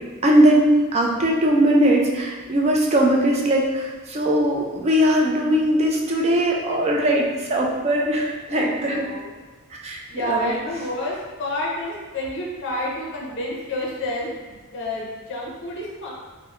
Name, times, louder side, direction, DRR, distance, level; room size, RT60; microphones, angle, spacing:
voice 1, 0.2-9.0 9.8-10.0 10.2-10.5, right 1 dB, 30° right, -2 dB, 0.3 m, -20 dB
voice 2, 8.5-9.3 10.1-16.1, left 1 dB, 55° left, -4 dB, 0.5 m, -29 dB
2.9 x 2.0 x 2.4 m, 1.3 s
head